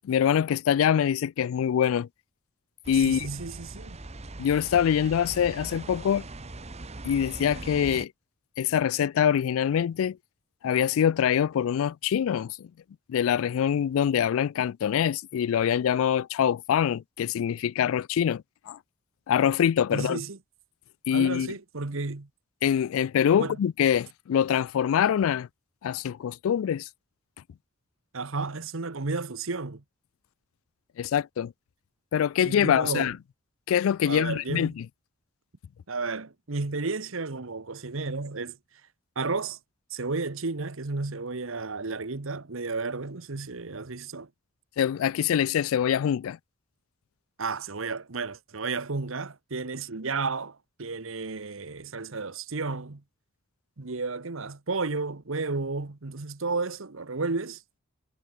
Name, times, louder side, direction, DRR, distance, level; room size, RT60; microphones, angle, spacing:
voice 1, 0.0-2.1 2.9-3.3 4.4-6.2 7.1-8.1 8.6-10.2 10.6-12.7 13.1-18.8 19.3-20.2 21.1-21.5 22.6-25.5 25.8-26.9 31.0-31.5 32.1-33.2 33.7-34.9 44.8-46.4, left 9 dB, 70° left, 0.3 m, -24 dB
sound 1, 2.8-8.1, right 2 dB, 30° right, 1.2 m, -41 dB
voice 2, 2.9-4.0 19.9-20.4 21.1-22.3 23.4-23.5 28.1-29.8 32.4-33.1 34.1-34.7 35.9-38.6 39.2-39.6 39.9-44.3 47.4-53.0 53.8-57.6, right 3 dB, 65° right, 1.2 m, -32 dB
head